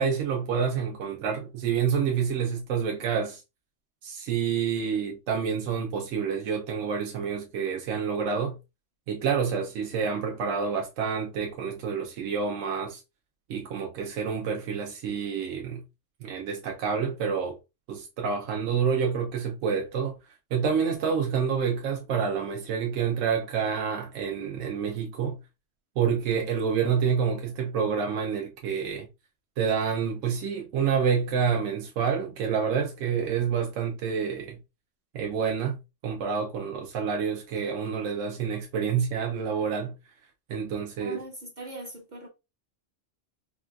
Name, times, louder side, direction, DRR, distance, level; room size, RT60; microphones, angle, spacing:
voice 1, 0.0-3.4 4.0-8.6 9.1-13.0 13.5-15.8 16.2-17.6 17.9-20.2 20.5-25.4 26.0-29.1 29.6-34.6 35.1-39.9 40.5-41.2, right 6 dB, 90° right, 1.0 m, -28 dB
voice 2, 41.0-42.3, right 1 dB, 50° right, 0.6 m, -41 dB
4.2 x 2.2 x 2.2 m
omnidirectional pair, 1.3 m